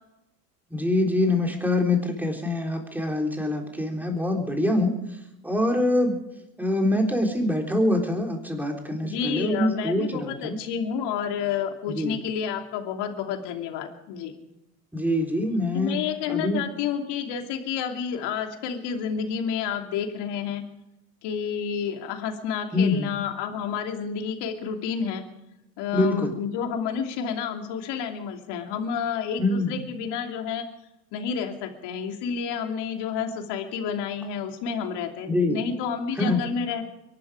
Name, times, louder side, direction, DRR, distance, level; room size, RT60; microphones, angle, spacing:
voice 1, 0.7-6.2 6.6-10.6 11.9-12.2 14.9-16.0 16.3-16.6 22.7-23.1 25.9-26.3 29.4-29.7 35.3-35.6 36.2-36.4, left 1 dB, 5° right, 2 dB, 3.8 m, -25 dB
voice 2, 9.0-14.4 15.7-20.6 21.2-25.2 25.8-30.7 31.1-36.8, left 7 dB, 55° left, 4 dB, 2.9 m, -30 dB
23.0 x 12.0 x 5.0 m, 0.91 s
hypercardioid pair, 100°, 49 cm